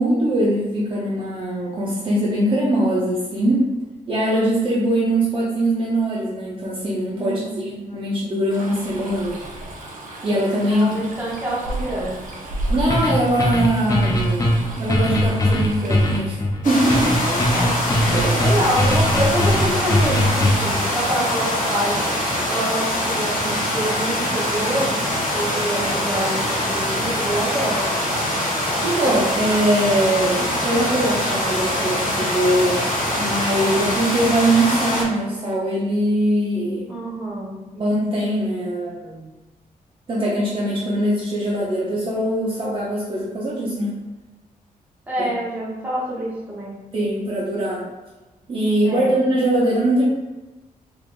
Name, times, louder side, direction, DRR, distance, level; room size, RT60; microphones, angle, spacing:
voice 1, 0.0-3.7 4.1-9.4 10.2-10.9 12.7-14.5 14.8-16.4 16.6-17.2 18.1-18.4 28.8-32.8 33.2-36.9 37.7-39.2 40.1-43.9 45.2-45.3 46.9-47.9 48.5-50.1, right 1 dB, 35° right, -6 dB, 0.7 m, -21 dB
voice 2, 7.2-7.8 10.7-12.2 17.2-17.8 18.4-22.0 22.5-25.0 25.3-27.9 28.8-29.3 36.9-37.6 45.1-46.8 48.8-49.2, right 1 dB, 10° right, -6 dB, 1.0 m, -26 dB
Stream, 8.5-16.2, right 1 dB, 70° right, 0.8 m, -33 dB
sound 1, 12.9-20.8, left 1 dB, 25° left, 0.6 m, -20 dB
sound 2, 16.6-35.0, left 1 dB, 65° left, 1.1 m, -23 dB
3.5 x 3.4 x 2.5 m, 1.1 s
wide cardioid pair, 170°, 15 cm